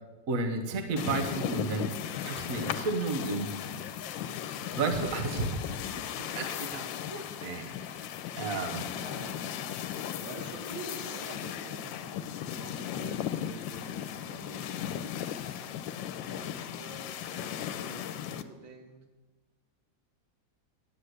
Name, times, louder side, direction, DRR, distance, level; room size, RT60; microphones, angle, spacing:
voice 1, 0.3-1.9 2.2-3.5 4.7-5.6 6.0-8.0 8.4-8.9, right 3 dB, 50° right, 6 dB, 1.5 m, -32 dB
sound 1, 1.0-18.4, left 10 dB, 85° left, 1.4 m, -37 dB
voice 2, 2.5-2.8 3.2-3.5 8.9-9.4 10.2-15.4 16.2-19.0, right 2 dB, 85° right, 1 dB, 2.8 m, -47 dB
11.0 x 9.6 x 8.0 m, 1.2 s
omnidirectional pair, 2.0 m